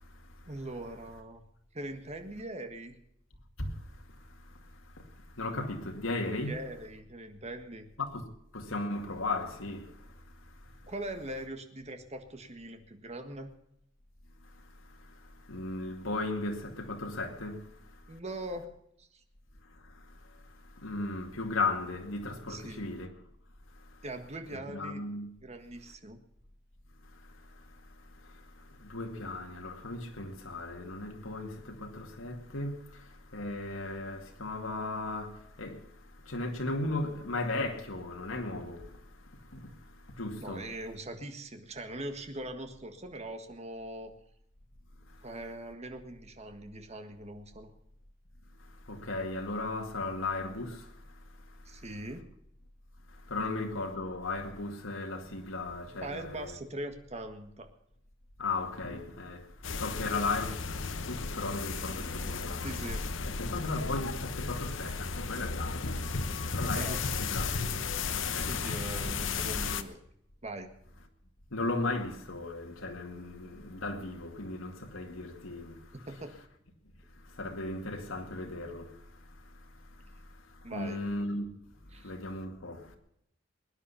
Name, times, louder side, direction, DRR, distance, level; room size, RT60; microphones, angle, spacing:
voice 1, 0.5-1.5 1.7-2.9 6.3-7.9 10.9-13.5 18.1-18.7 19.0-19.1 22.5-22.8 24.0-25.0 25.4-26.2 40.4-44.1 45.2-47.7 51.6-52.2 56.0-57.7 62.6-63.0 66.7-67.3 68.4-70.0 70.4-70.7 76.1-76.3 80.6-81.0 81.9-82.1, right 1 dB, 35° right, 1.6 m, -41 dB
voice 2, 5.4-6.6 8.0-8.2 8.5-9.9 15.5-17.6 20.8-23.1 24.5-25.3 28.8-32.8 33.3-35.8 36.3-38.9 39.5-39.6 40.2-40.7 48.9-50.9 53.3-56.6 58.4-59.4 59.7-60.5 61.1-62.6 63.2-66.0 66.5-67.6 68.1-68.6 71.5-75.7 77.4-78.9 80.7-81.5 82.0-82.8, left 2 dB, 85° left, 2.3 m, -36 dB
sound 1, 59.6-69.8, left 4 dB, 70° left, 1.0 m, -34 dB
21.0 x 10.0 x 5.7 m
head